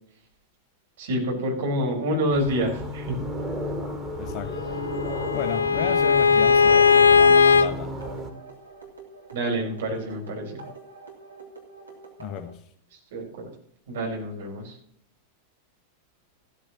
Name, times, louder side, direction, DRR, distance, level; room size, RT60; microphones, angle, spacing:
voice 1, 1.0-3.2 9.3-10.7 13.1-13.5 13.9-14.8, equal, 60° right, 0 dB, 4.8 m, -27 dB
sound 1, 2.3-8.3, equal, 15° right, 2.3 m, -33 dB
voice 2, 4.2-4.7 5.3-7.9 12.2-12.6, left 9 dB, 40° left, 9 dB, 1.2 m, -34 dB
Bowed string instrument, 4.5-7.7, left 5 dB, 60° left, 0.7 m, -18 dB
sound 2, 7.4-12.5, right 3 dB, 80° right, 2.9 m, -46 dB
15.0 x 13.5 x 3.0 m, 0.65 s
figure-of-eight pair, 90°, 0 cm